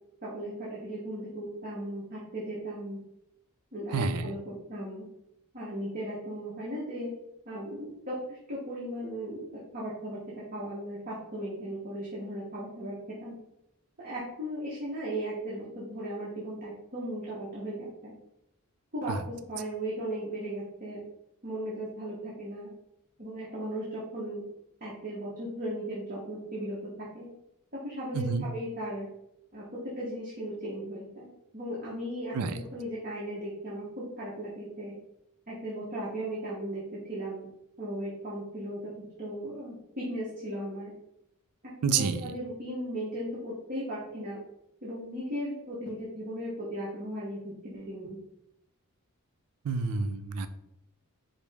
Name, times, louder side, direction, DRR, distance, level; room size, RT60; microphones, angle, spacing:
voice 1, 0.2-3.0 3.7-4.4 4.7-5.0 5.5-7.1 7.5-9.4 9.7-10.2 10.5-13.3 14.0-18.1 18.9-19.1 19.5-21.0 21.4-22.7 23.2-24.4 24.8-26.8 27.1-27.3 27.7-29.1 29.5-29.6 30.0-31.3 31.5-34.9 35.5-36.8 37.1-37.5 37.8-38.8 39.2-40.9 41.9-44.4 44.8-48.2, right 1 dB, 40° right, -7 dB, 0.9 m, -36 dB
voice 2, 3.9-4.4 19.1-19.2 28.1-28.5 32.3-32.6 41.8-42.3 49.6-50.5, right 5 dB, 90° right, 10 dB, 0.4 m, -29 dB
4.9 x 2.0 x 3.3 m, 0.83 s
head